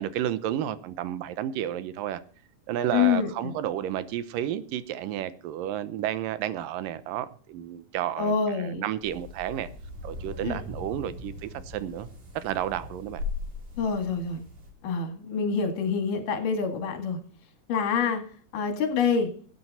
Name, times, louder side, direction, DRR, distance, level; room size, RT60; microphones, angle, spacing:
voice 1, 0.0-2.2 2.7-9.7 10.0-12.1 12.4-13.2, right 11 dB, 80° right, 2.5 m, -31 dB
voice 2, 2.9-3.5 8.2-8.8 10.4-10.6 13.8-14.4 14.8-17.2 17.7-18.2 18.5-19.3, left 6 dB, 75° left, 3.8 m, -26 dB
sound 1, 9.0-14.7, left 3 dB, 60° right, 4.7 m, -39 dB
18.0 x 9.3 x 4.3 m
omnidirectional pair, 3.9 m